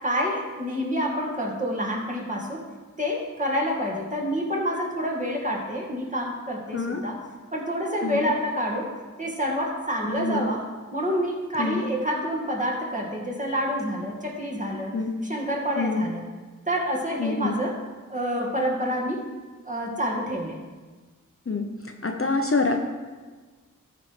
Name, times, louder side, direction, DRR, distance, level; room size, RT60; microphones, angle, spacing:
voice 1, 0.0-2.6 3.0-7.2 7.5-8.9 9.2-10.7 10.9-14.9 15.2-16.2 16.7-17.8 18.1-19.3 19.6-20.6, equal, 25° right, -2 dB, 2.2 m, -28 dB
voice 2, 8.0-8.3 10.0-10.5 11.6-11.8 14.9-15.1 15.8-16.0 17.2-17.6 21.5-21.7 22.0-22.8, left 3 dB, 40° left, 3 dB, 0.8 m, -26 dB
13.5 x 4.8 x 4.9 m, 1.4 s
wide cardioid pair, 50°, 32 cm